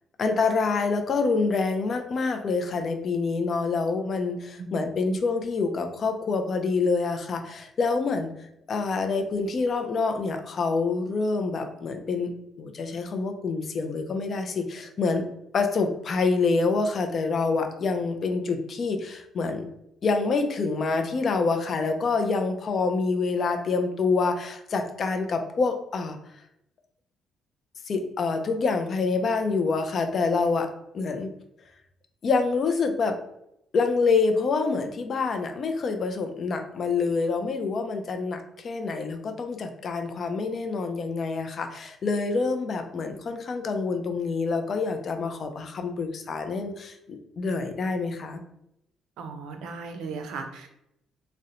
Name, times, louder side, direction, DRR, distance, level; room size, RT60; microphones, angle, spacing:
voice 1, 0.2-8.3 8.7-15.3 15.5-19.7 20.0-26.2 27.9-30.7 30.9-31.3 32.2-33.2 33.7-48.4, left 4 dB, 45° left, 6 dB, 0.3 m, -26 dB
voice 2, 4.6-5.2 49.2-50.7, right 4 dB, 85° right, 5 dB, 0.4 m, -37 dB
2.7 x 2.0 x 2.5 m, 0.80 s
cardioid pair, 130°, 0 cm